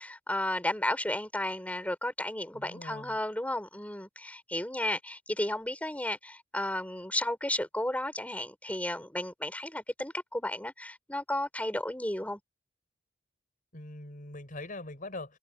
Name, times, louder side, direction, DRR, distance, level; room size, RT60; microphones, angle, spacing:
voice 1, 0.0-12.4, left 1 dB, 10° left, 5.7 m, -33 dB
voice 2, 2.5-3.2 13.7-15.4, left 2 dB, 45° left, 4.7 m, -42 dB
head